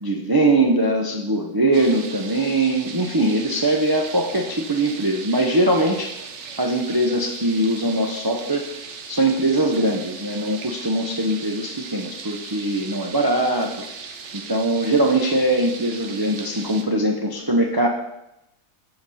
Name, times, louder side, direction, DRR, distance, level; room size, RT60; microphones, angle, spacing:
voice 1, 0.0-6.1 6.6-8.7 9.1-13.8 14.3-17.9, right 1 dB, 25° right, 1 dB, 0.6 m, -21 dB
sound 1, 1.7-16.8, right 5 dB, 55° right, 1.1 m, -38 dB
13.5 x 5.1 x 4.2 m, 0.88 s
omnidirectional pair, 1.5 m